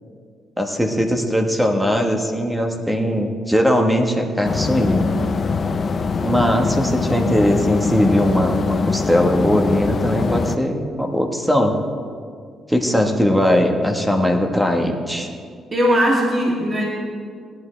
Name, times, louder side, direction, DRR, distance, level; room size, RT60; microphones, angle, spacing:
voice 1, 0.6-5.1 6.2-11.7 12.7-15.3, equal, 5° right, 3 dB, 1.4 m, -19 dB
sound 1, 4.4-10.6, left 4 dB, 40° left, 0.6 m, -23 dB
voice 2, 15.7-16.8, equal, 30° right, -3 dB, 2.7 m, -18 dB
18.0 x 11.5 x 3.4 m, 2.1 s
cardioid pair, 90°, 0 cm